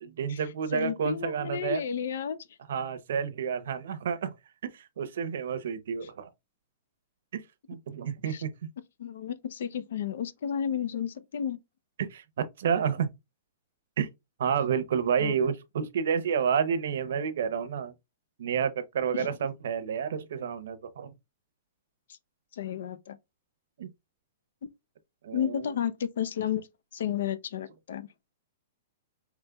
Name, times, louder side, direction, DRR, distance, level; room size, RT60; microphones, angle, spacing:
voice 1, 0.0-1.8 2.7-4.3 4.7-6.3 7.3-7.4 7.7-8.7 12.0-13.1 14.0-14.1 14.4-17.9 18.4-21.1 23.8-23.9 25.2-25.8, right 7 dB, 70° right, 0.7 m, -30 dB
voice 2, 0.7-2.5 8.3-8.4 9.0-11.6 15.2-15.3 19.1-19.3 22.5-23.2 25.3-26.7 26.9-28.1, left 9 dB, 70° left, 0.5 m, -32 dB
5.0 x 3.1 x 2.3 m
hypercardioid pair, 145°, 0 cm